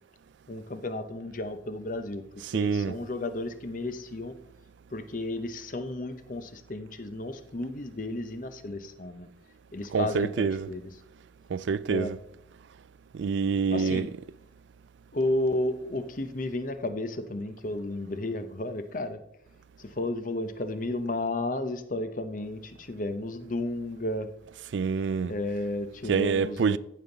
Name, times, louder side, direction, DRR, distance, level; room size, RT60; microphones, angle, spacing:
voice 1, 0.5-2.2 2.5-4.3 4.9-9.3 9.7-10.9 11.9-12.1 13.7-14.1 15.1-19.2 19.8-24.3 25.2-26.8, left 1 dB, 45° left, 0.8 m, -33 dB
voice 2, 2.4-3.0 9.9-10.7 11.5-12.2 13.1-14.1 24.7-25.3 26.0-26.8, right 5 dB, 75° right, 0.4 m, -26 dB
14.5 x 5.4 x 3.9 m
head